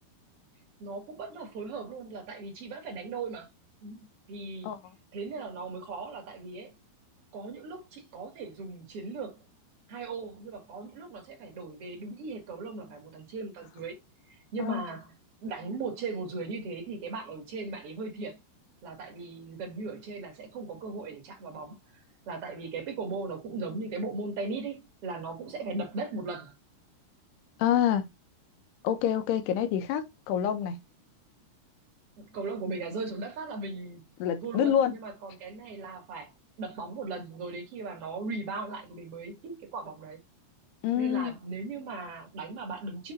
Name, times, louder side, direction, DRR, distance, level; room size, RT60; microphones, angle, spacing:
voice 1, 0.8-3.5 3.8-4.0 4.3-4.7 5.1-6.7 7.3-9.4 9.9-14.0 14.3-15.1 15.4-18.4 18.8-21.8 22.3-26.6 32.2-34.1 34.4-36.3 36.6-40.2 40.9-43.1, right 3 dB, 40° right, 2.7 m, -38 dB
voice 2, 27.6-28.1 28.8-30.8 34.2-34.9 40.8-41.3, left 9 dB, 85° left, 3.0 m, -27 dB
7.2 x 3.5 x 4.2 m
omnidirectional pair, 4.6 m